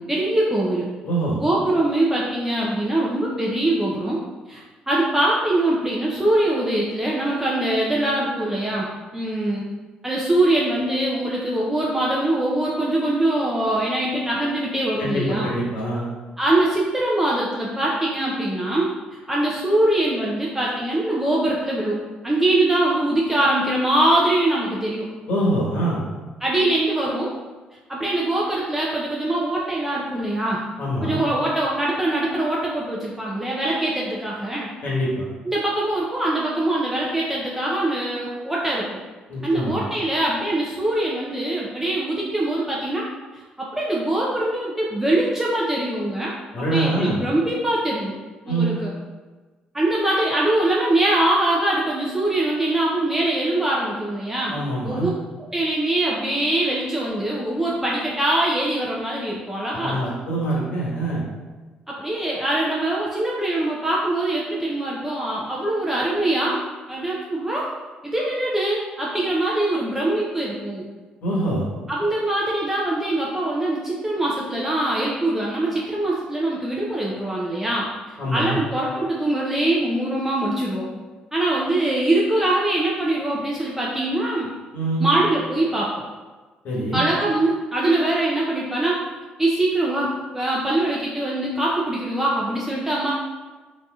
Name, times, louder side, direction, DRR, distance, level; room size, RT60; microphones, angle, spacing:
voice 1, 0.0-0.9 1.3-4.2 4.5-9.6 10.0-15.5 16.4-22.0 22.2-25.1 26.4-27.3 27.9-30.6 31.0-34.7 35.5-38.8 39.4-43.1 43.3-48.1 48.5-48.9 49.7-54.5 54.8-55.1 55.4-60.0 61.9-66.6 66.9-67.7 68.0-70.8 71.9-81.0 81.3-84.5 85.0-85.9 86.9-89.0 89.4-93.1, right 1 dB, 10° right, -5 dB, 0.5 m, -23 dB
voice 2, 1.0-1.4 15.0-16.1 25.3-26.0 30.8-31.2 34.8-35.3 39.3-39.8 46.5-47.2 48.4-48.7 54.5-55.1 59.8-61.2 71.2-71.7 78.2-78.6 84.7-85.0 86.6-87.0, right 1 dB, 70° left, -5 dB, 1.2 m, -24 dB
4.0 x 2.7 x 2.3 m, 1.3 s
cardioid pair, 95°, 3 cm